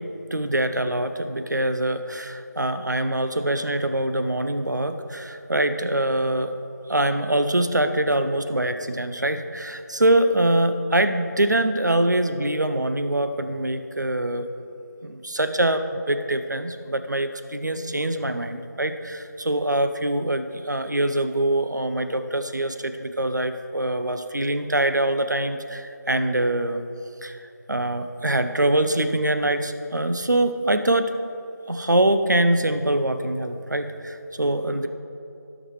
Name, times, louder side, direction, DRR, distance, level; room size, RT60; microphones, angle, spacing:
voice 1, 0.3-6.5 6.9-14.5 15.0-26.8 27.2-27.4 27.7-31.1 31.7-34.9, right 1 dB, 70° right, 9 dB, 0.7 m, -24 dB
17.0 x 6.1 x 3.2 m, 2.8 s
figure-of-eight pair, 170°, 10 cm